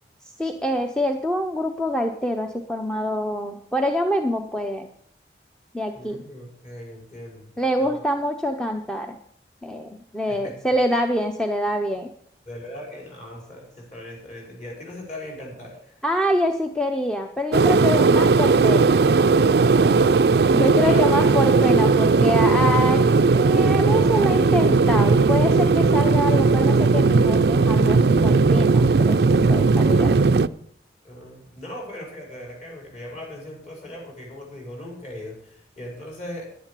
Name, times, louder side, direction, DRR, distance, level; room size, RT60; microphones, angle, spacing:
voice 1, 0.4-4.9 5.7-6.2 7.6-9.2 9.6-12.1 16.0-19.0 20.5-23.0 23.3-30.3, equal, 5° left, 4 dB, 0.7 m, -25 dB
voice 2, 5.9-8.0 10.3-10.6 12.5-16.0 19.8-21.4 31.0-36.5, equal, 40° left, -1 dB, 5.0 m, -39 dB
sound 1, 17.5-30.5, right 4 dB, 65° right, 0.4 m, -17 dB
10.5 x 10.5 x 6.8 m, 0.63 s
head